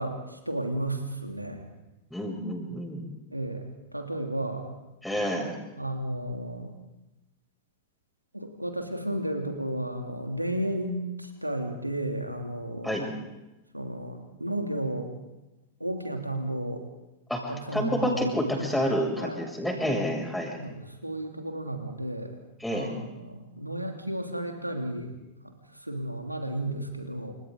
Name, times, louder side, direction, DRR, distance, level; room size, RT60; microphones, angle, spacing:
voice 1, 0.0-1.7 3.3-4.7 5.7-6.7 8.3-13.2 13.7-15.1 15.8-16.8 17.5-18.8 19.2-19.4 20.5-22.4 22.7-25.1 25.4-25.5 25.8-27.3, right 1 dB, 90° right, 3 dB, 3.1 m, -33 dB
voice 2, 2.1-3.0 5.0-5.5 12.8-13.1 17.3-20.6 22.6-22.9, equal, 5° left, 0 dB, 7.6 m, -29 dB
29.5 x 28.0 x 4.1 m, 0.99 s
figure-of-eight pair, 90°, 0 cm